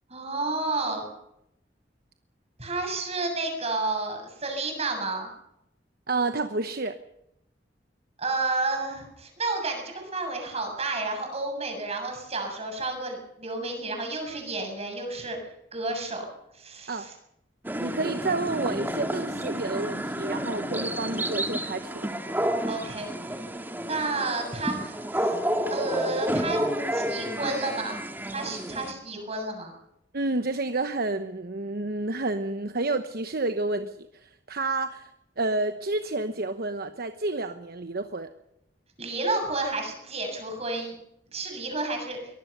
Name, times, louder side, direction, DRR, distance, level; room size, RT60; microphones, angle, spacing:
voice 1, 0.1-1.1 2.6-5.3 8.2-16.3 16.5-17.1 22.7-25.3 25.7-26.6 26.9-28.0 28.3-29.7 39.0-41.0 41.3-42.2, right 3 dB, 35° right, 4 dB, 7.3 m, -31 dB
voice 2, 6.1-7.0 16.9-17.1 17.8-22.1 30.1-35.1 35.4-38.3, right 2 dB, 55° right, 9 dB, 1.1 m, -30 dB
sound 1, 17.6-28.9, equal, 10° right, 1.9 m, -30 dB
23.5 x 19.5 x 6.7 m, 0.80 s
head